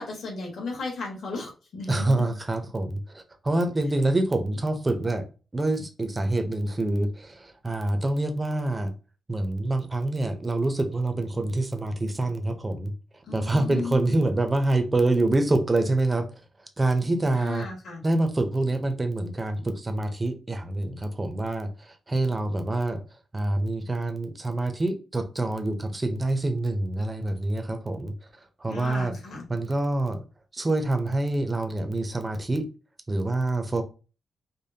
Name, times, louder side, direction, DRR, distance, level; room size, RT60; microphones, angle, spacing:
voice 1, 0.0-2.3 13.3-14.2 17.3-18.0 28.7-29.4, left 3 dB, 60° left, 1.4 m, -35 dB
voice 2, 1.9-5.2 5.5-8.9 9.3-12.9 13.3-16.3 16.8-17.7 18.0-21.7 22.1-23.0 23.3-28.1 28.6-29.1 29.5-30.2 30.5-32.7 33.1-33.8, right 2 dB, 15° right, 0.5 m, -26 dB
5.0 x 2.1 x 2.7 m
wide cardioid pair, 180°, 0 cm